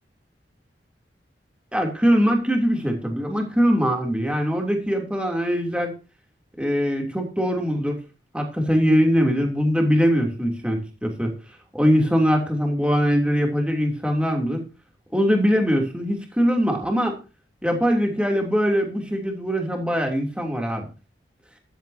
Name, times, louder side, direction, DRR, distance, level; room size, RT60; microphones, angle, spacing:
voice 1, 1.7-5.9 6.6-8.0 8.3-11.3 11.7-14.6 15.1-17.2 17.6-20.9, equal, 5° right, 2 dB, 3.1 m, -22 dB
14.0 x 12.5 x 2.8 m, 0.33 s
head